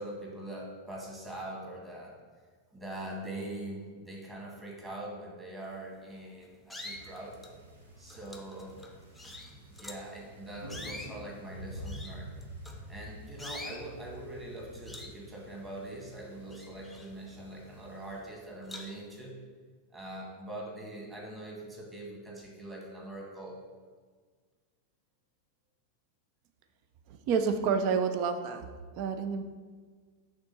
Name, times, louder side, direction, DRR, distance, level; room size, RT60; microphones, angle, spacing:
voice 1, 0.0-2.1 2.7-7.4 8.0-8.8 9.2-9.3 9.7-12.3 12.9-19.4 19.9-23.6, right 1 dB, 15° right, -3 dB, 2.0 m, -43 dB
sound 1, 5.9-6.1 6.7-7.6 8.1-10.1 10.6-13.0 13.4-13.9 14.3-14.5 14.9-16.0 16.3-17.6 18.1-18.2 18.7-19.2, left 2 dB, 5° left, 0.8 m, -46 dB
sound 2, 6.8-18.2, equal, 75° right, 1.2 m, -48 dB
voice 2, 27.1-28.6 29.0-29.4, right 6 dB, 45° right, 8 dB, 0.6 m, -29 dB
5.9 x 3.8 x 5.6 m, 1.5 s
figure-of-eight pair, 90°, 0 cm